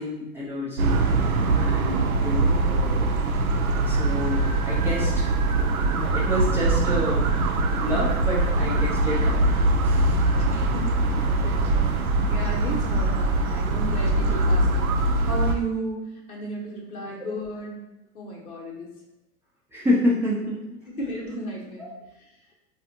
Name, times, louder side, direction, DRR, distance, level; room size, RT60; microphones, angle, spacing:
voice 1, 0.0-3.3 3.9-5.3 5.9-9.4 9.8-10.2 10.5-10.7 19.7-20.6 21.8-21.9, left 1 dB, 5° right, -8 dB, 0.4 m, -29 dB
sound 1, 0.8-15.5, right 2 dB, 75° right, 0.6 m, -22 dB
voice 2, 2.2-2.6 10.3-12.0 12.3-16.0 16.3-17.7 18.1-18.9 20.9-21.9, right 1 dB, 75° left, -3 dB, 1.1 m, -34 dB
4.0 x 2.5 x 2.7 m, 0.89 s
figure-of-eight pair, 85°, 43 cm